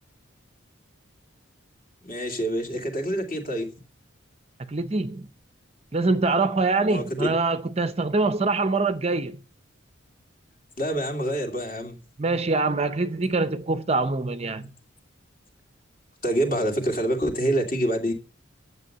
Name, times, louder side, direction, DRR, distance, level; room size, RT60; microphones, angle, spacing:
voice 1, 2.0-3.7 6.9-7.3 10.8-12.0 16.2-18.1, right 1 dB, 40° left, 2.6 m, -26 dB
voice 2, 4.6-5.3 5.9-9.4 12.2-14.7, right 3 dB, 30° right, 0.6 m, -24 dB
10.5 x 8.0 x 6.6 m
head